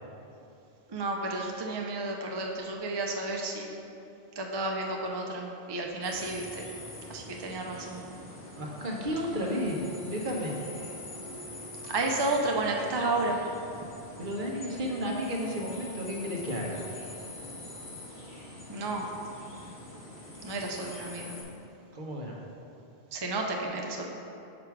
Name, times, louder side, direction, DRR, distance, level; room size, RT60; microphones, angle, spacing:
voice 1, 0.9-3.9 4.3-6.7 7.1-8.0 11.8-13.4 13.7-13.8 18.7-19.1 20.4-21.4 23.1-24.1, right 2 dB, 35° right, 0 dB, 0.4 m, -32 dB
sound 1, 6.0-21.4, left 2 dB, 50° left, 1.4 m, -45 dB
voice 2, 8.6-9.8 10.1-10.5 14.2-16.8 21.9-22.4, equal, 55° right, -2 dB, 1.0 m, -33 dB
sound 2, 8.7-20.1, equal, 25° left, 1.5 m, -49 dB
5.9 x 5.1 x 4.6 m, 2.7 s
omnidirectional pair, 1.1 m